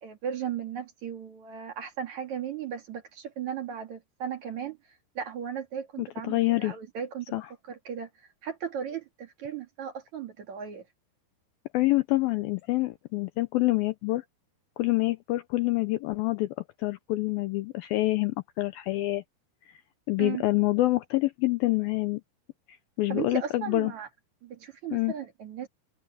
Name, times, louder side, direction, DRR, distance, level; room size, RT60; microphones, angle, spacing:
voice 1, 0.0-4.8 5.2-7.3 7.7-8.1 8.4-10.8 20.2-20.4 23.1-24.1 24.4-25.7, right 8 dB, 50° right, 2.7 m, -36 dB
voice 2, 6.0-6.8 7.3-7.5 11.7-14.2 14.8-19.2 20.1-22.2 22.7-23.9 24.9-25.1, left 19 dB, 80° left, 2.2 m, -27 dB
omnidirectional pair, 4.9 m